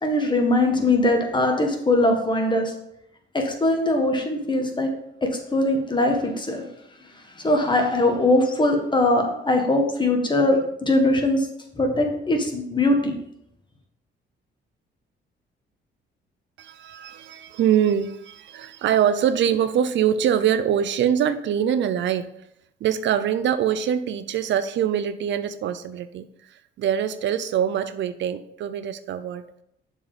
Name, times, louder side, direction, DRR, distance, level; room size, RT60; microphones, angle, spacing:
voice 1, 0.0-2.7 3.3-4.9 5.2-6.6 7.3-11.5 11.7-13.1, left 2 dB, 25° left, 1.6 m, -21 dB
voice 2, 16.6-22.3 22.8-29.4, right 9 dB, 65° right, 0.5 m, -24 dB
6.9 x 4.6 x 5.0 m
cardioid pair, 90°, 20 cm